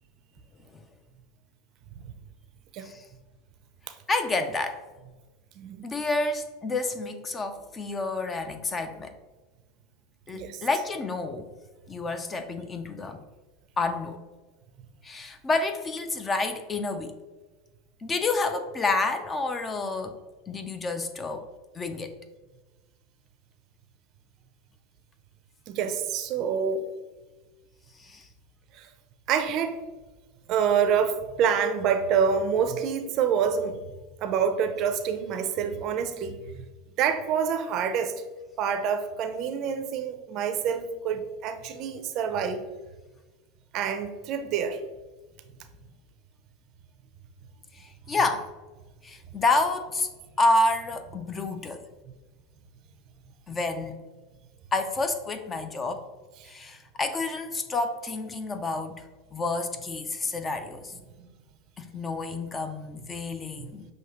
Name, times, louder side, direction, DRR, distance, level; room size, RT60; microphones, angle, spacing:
voice 1, 4.1-4.8 5.8-9.1 10.3-11.5 11.9-13.2 13.8-14.2 15.0-17.2 18.0-20.2 20.5-21.5 21.7-22.1 28.0-28.3 47.7-48.5 49.0-50.1 50.4-51.8 53.5-54.0 54.7-56.0 56.4-60.9 61.8-63.9, left 3 dB, 20° left, 8 dB, 0.4 m, -29 dB
voice 2, 5.6-5.9 10.3-10.6 25.7-26.9 28.7-28.9 29.3-29.8 30.5-33.8 34.2-36.6 37.0-38.1 38.6-42.6 43.7-44.8 63.6-63.7, right 7 dB, 45° right, 8 dB, 0.5 m, -27 dB
6.3 x 2.7 x 2.9 m, 1.2 s
supercardioid pair, 130°, 0 cm